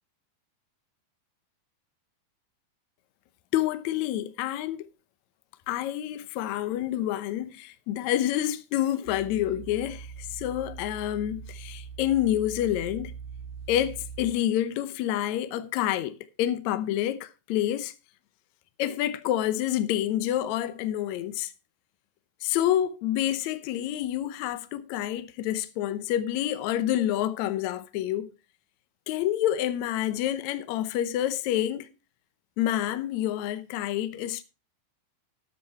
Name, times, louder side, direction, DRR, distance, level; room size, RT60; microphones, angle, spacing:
voice 1, 3.5-4.9 5.7-13.1 13.7-17.9 18.8-21.5 22.4-28.3 29.1-31.9 32.6-34.4, left 12 dB, 80° left, 1.6 m, -28 dB
sound 1, 9.1-14.3, right 7 dB, 80° right, 1.9 m, -42 dB
13.0 x 7.7 x 4.3 m
omnidirectional pair, 4.4 m